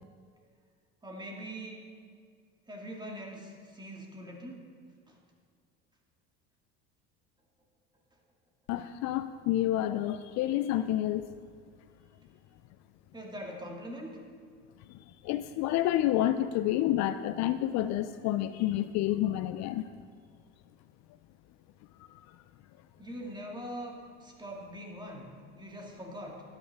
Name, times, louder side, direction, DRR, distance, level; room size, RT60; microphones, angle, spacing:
voice 1, 1.0-1.9 2.7-4.6 5.1-5.2 13.1-14.1 23.0-26.4, equal, 15° right, -1 dB, 2.1 m, -42 dB
voice 2, 8.7-11.3 15.2-19.8, left 13 dB, 60° left, 11 dB, 0.5 m, -29 dB
12.0 x 9.0 x 3.5 m, 2.1 s
supercardioid pair, 85°, 32 cm